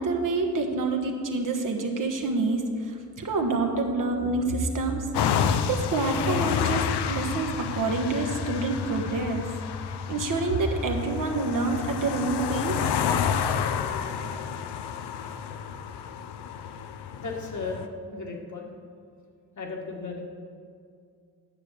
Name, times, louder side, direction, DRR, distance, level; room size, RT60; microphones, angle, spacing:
voice 1, 0.0-5.1 5.7-9.5 10.1-12.9, right 3 dB, 50° right, 2 dB, 1.4 m, -27 dB
sound 1, 5.1-17.9, left 7 dB, 75° left, 0.7 m, -29 dB
voice 2, 17.2-17.8 18.1-18.7 19.6-20.2, left 4 dB, 45° left, 0 dB, 1.9 m, -35 dB
9.8 x 6.4 x 6.6 m, 2.2 s
cardioid pair, 80°, 40 cm